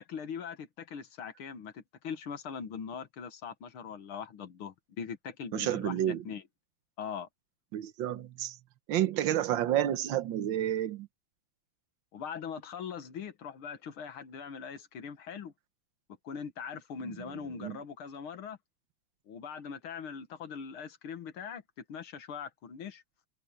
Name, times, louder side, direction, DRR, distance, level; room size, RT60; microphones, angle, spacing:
voice 1, 0.0-6.4 7.0-7.3 12.1-15.5 16.2-18.6 19.3-23.3, left 6 dB, 80° left, 2.3 m, -41 dB
voice 2, 5.5-6.2 7.7-8.5 8.9-11.1 17.0-17.1 17.6-17.8, right 11 dB, 65° right, 1.7 m, -30 dB
omnidirectional pair, 2.3 m